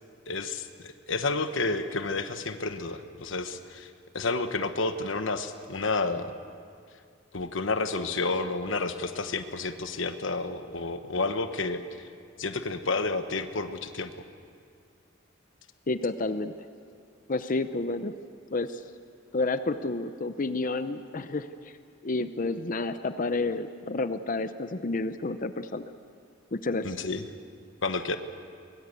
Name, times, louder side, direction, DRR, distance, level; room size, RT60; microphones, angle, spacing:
voice 1, 0.3-6.3 7.3-11.8 12.4-14.1 26.8-27.2 27.8-28.2, left 3 dB, 75° left, 8 dB, 1.1 m, -30 dB
voice 2, 15.9-16.5 17.3-18.1 18.5-18.8 19.3-21.8 22.0-25.9 26.5-27.0, left 3 dB, 45° left, 11 dB, 0.7 m, -30 dB
23.5 x 20.0 x 8.3 m, 2.2 s
head